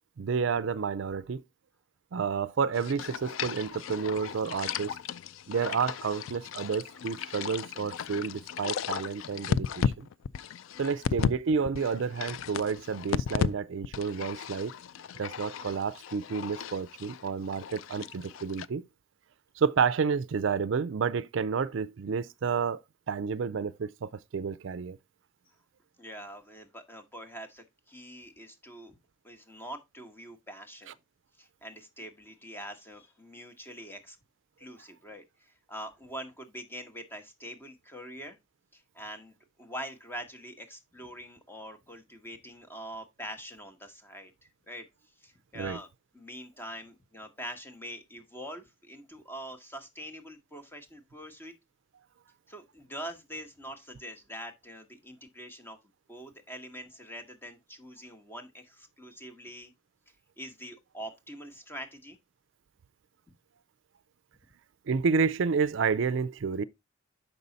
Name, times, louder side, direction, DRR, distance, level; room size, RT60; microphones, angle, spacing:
voice 1, 0.2-1.4 2.1-5.0 5.5-10.1 10.8-14.7 15.2-18.8 19.6-22.8 23.1-25.0 45.6-45.8 64.9-66.6, right 5 dB, 65° right, 0.4 m, -30 dB
sound 1, 2.7-11.4 11.6-13.5 13.8-18.7, left 7 dB, 75° left, 0.4 m, -35 dB
voice 2, 26.0-28.9 29.2-31.0 31.4-34.2 34.6-38.4 38.7-44.3 44.7-44.9 45.2-45.9 46.1-51.5 52.5-55.8 56.1-59.7 60.4-62.2, equal, 10° left, 1.1 m, -44 dB
6.8 x 5.4 x 4.0 m
head